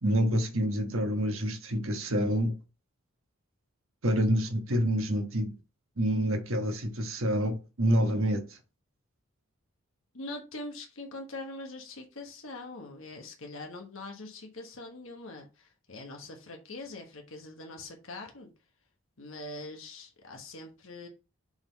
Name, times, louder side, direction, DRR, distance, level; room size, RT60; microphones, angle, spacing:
voice 1, 0.0-2.5 4.0-5.5 6.0-8.4, equal, 75° right, 1.3 m, -27 dB
voice 2, 10.1-18.5 19.2-21.1, left 2 dB, 70° left, 1.3 m, -43 dB
6.9 x 3.8 x 4.0 m
head